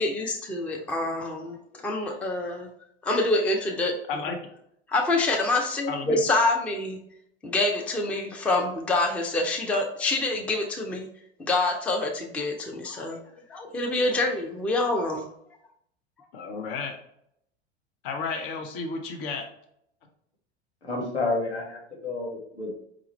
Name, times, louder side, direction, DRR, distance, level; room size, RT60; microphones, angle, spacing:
voice 1, 0.0-1.6 1.8-2.7 3.0-4.0 4.9-7.0 7.4-11.1 11.4-13.2 13.5-15.3, left 2 dB, 5° left, 2 dB, 0.4 m, -26 dB
voice 2, 5.9-6.2 16.3-16.9 18.0-19.5, left 4 dB, 50° left, 5 dB, 0.7 m, -32 dB
voice 3, 20.8-22.9, left 3 dB, 85° left, -3 dB, 1.4 m, -30 dB
4.9 x 2.4 x 3.0 m, 0.73 s
figure-of-eight pair, 80°, 33 cm